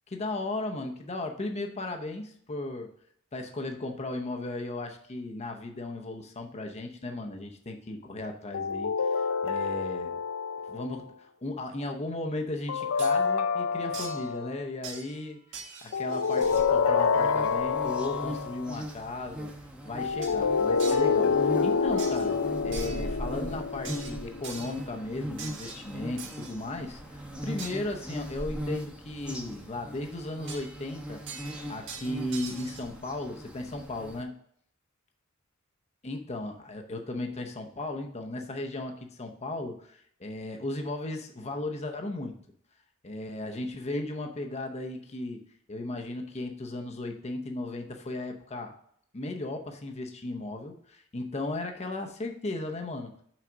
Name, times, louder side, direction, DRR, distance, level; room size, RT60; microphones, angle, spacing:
voice 1, 0.1-2.9 3.3-10.1 10.7-15.4 15.8-19.5 19.8-34.3 36.0-42.3 43.0-45.4 45.7-48.7 49.1-53.1, left 2 dB, 30° left, 4 dB, 0.7 m, -36 dB
sound 1, 8.5-11.0 12.7-14.5 15.9-18.6 20.0-24.5, left 5 dB, 80° left, 0.5 m, -27 dB
sound 2, 13.0-13.1 13.9-14.3 14.8-15.3 15.5-16.7 20.2-20.4 20.8-21.2 22.0-22.4 22.7-23.1 23.8-24.9 25.4-26.5 27.6-27.8 30.5-30.9 31.3-32.8, right 5 dB, 60° right, 1.5 m, -43 dB
sound 3, 16.4-34.2, equal, 5° right, 0.9 m, -40 dB
6.0 x 4.1 x 5.9 m, 0.65 s
head